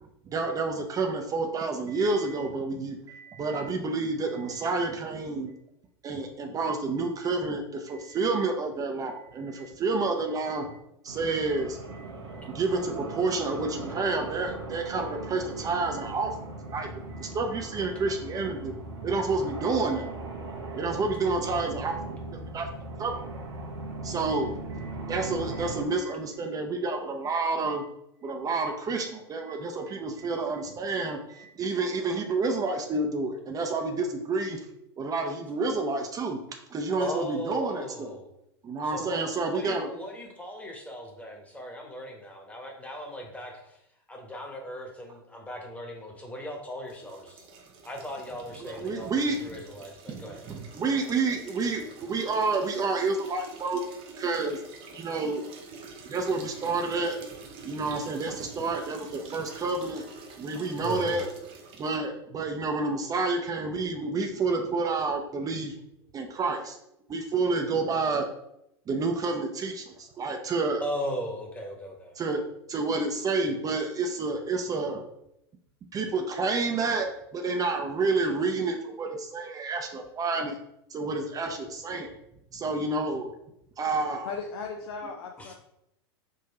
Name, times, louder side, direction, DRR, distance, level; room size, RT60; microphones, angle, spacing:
voice 1, 0.3-5.5 6.0-10.8 11.0-16.3 16.7-18.7 19.0-20.1 20.8-22.0 22.3-22.7 23.0-23.1 24.0-27.9 28.2-34.6 35.0-36.4 36.7-38.2 38.6-39.9 48.6-49.4 50.1-53.8 54.2-54.6 54.9-55.4 56.0-57.2 57.6-60.0 60.4-61.3 61.8-65.7 66.1-66.8 67.1-68.3 68.9-70.8 72.2-72.4 72.7-75.0 75.9-80.6 80.9-82.1 82.5-83.3 83.8-84.3, right 3 dB, 25° right, 4 dB, 0.5 m, -29 dB
sound 1, 11.1-25.8, right 2 dB, 85° right, 1.0 m, -39 dB
voice 2, 36.9-38.3 38.8-43.8 44.1-47.5 47.8-50.4 60.8-61.2 70.8-72.1 85.4-85.5, equal, 10° left, 0 dB, 1.1 m, -38 dB
sound 2, 46.9-62.0, right 4 dB, 40° right, 0.9 m, -47 dB
voice 3, 84.2-85.5, left 5 dB, 75° left, 3 dB, 0.5 m, -36 dB
3.8 x 2.6 x 4.1 m, 0.81 s
hypercardioid pair, 95°, 14 cm